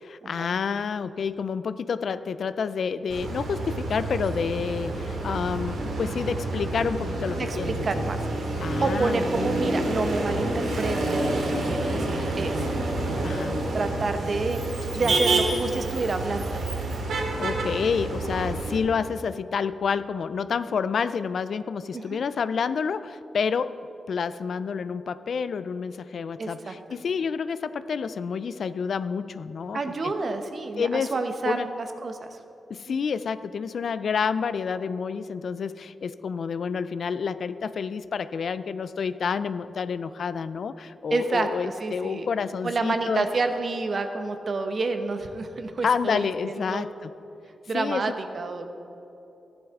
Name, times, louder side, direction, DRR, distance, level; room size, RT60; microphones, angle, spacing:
voice 1, 0.0-8.1 8.6-9.5 13.2-13.6 15.0-15.2 17.4-23.8 24.1-29.8 30.8-31.2 31.4-31.7 32.7-43.3 45.8-47.1 47.7-48.1, left 6 dB, 60° left, 14 dB, 0.3 m, -29 dB
Motor vehicle (road), 3.1-18.8, right 2 dB, 85° right, 2.3 m, -28 dB
voice 2, 7.3-8.2 8.8-12.7 13.0-13.4 13.7-14.6 14.9-16.6 21.9-22.2 26.4-26.7 29.7-32.4 32.9-33.0 41.1-42.3 42.6-46.9 47.7-48.7, right 3 dB, 45° right, 7 dB, 0.9 m, -29 dB
15.5 x 11.0 x 3.6 m, 3.0 s
wide cardioid pair, 145°, 0 cm